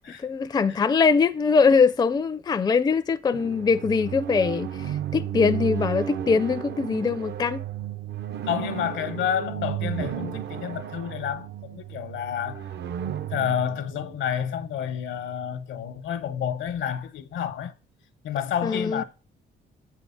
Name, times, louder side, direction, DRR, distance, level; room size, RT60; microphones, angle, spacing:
voice 1, 0.2-7.6 18.6-19.0, left 5 dB, 20° left, 0.4 m, -22 dB
sound 1, 3.3-15.0, right 10 dB, 60° right, 0.5 m, -33 dB
voice 2, 8.5-12.7 13.3-17.7 18.2-19.0, left 9 dB, 75° left, 0.8 m, -29 dB
7.8 x 4.6 x 5.6 m
cardioid pair, 90°, 20 cm